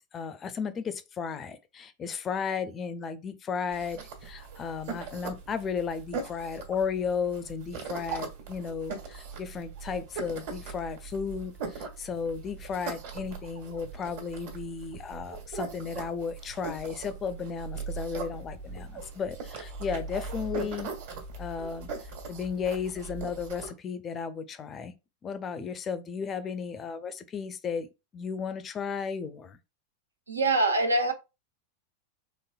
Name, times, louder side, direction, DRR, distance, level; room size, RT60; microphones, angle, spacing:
voice 1, 0.1-20.9 21.4-21.9 22.3-24.9 25.2-27.9 28.1-29.6, left 6 dB, 25° left, 0.5 m, -34 dB
sound 1, 3.7-23.7, right 4 dB, 55° right, 1.4 m, -40 dB
voice 2, 30.3-31.1, right 2 dB, 80° right, 0.8 m, -24 dB
4.3 x 3.1 x 2.3 m
figure-of-eight pair, 90°, 0 cm